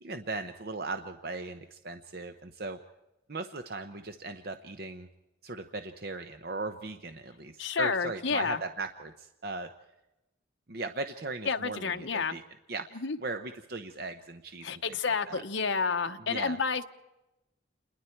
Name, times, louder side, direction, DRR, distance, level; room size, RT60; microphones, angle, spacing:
voice 1, 0.0-2.8 3.3-5.1 5.4-9.7 10.7-12.4 12.7-14.8 15.1-15.4 16.3-16.6, right 3 dB, 50° right, 8 dB, 0.8 m, -38 dB
voice 2, 7.6-8.6 11.5-12.4 12.9-13.2 14.6-16.8, left 5 dB, 70° left, 7 dB, 1.0 m, -30 dB
28.5 x 21.0 x 4.6 m, 0.95 s
head